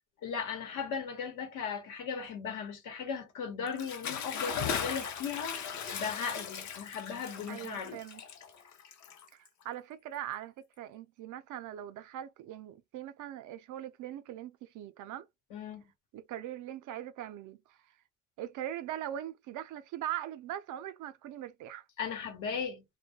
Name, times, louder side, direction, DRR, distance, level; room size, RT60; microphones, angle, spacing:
voice 1, 0.2-8.0 15.5-15.8 22.0-22.8, left 6 dB, 90° left, 1.0 m, -37 dB
Bathtub (filling or washing) / Splash splatter, 3.7-9.6, left 7 dB, 65° left, 0.7 m, -38 dB
voice 2, 7.5-8.2 9.6-15.3 16.1-17.6 18.4-21.8, right 12 dB, 80° right, 0.5 m, -41 dB
2.2 x 2.2 x 2.7 m
cardioid pair, 90°, 30 cm